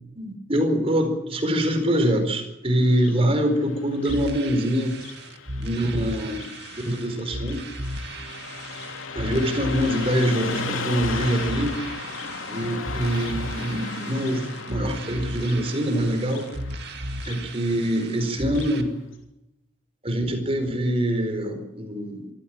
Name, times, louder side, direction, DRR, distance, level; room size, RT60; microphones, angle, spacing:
voice 1, 0.2-4.9 5.6-7.6 9.1-11.9 12.5-16.5 17.3-18.9 20.0-22.3, equal, 30° right, 6 dB, 4.5 m, -24 dB
Car passing by, 2.8-18.8, left 4 dB, 85° left, 3.4 m, -36 dB
sound 1, 4.0-18.8, right 1 dB, 55° right, 2.3 m, -36 dB
24.0 x 15.0 x 8.9 m, 0.89 s
head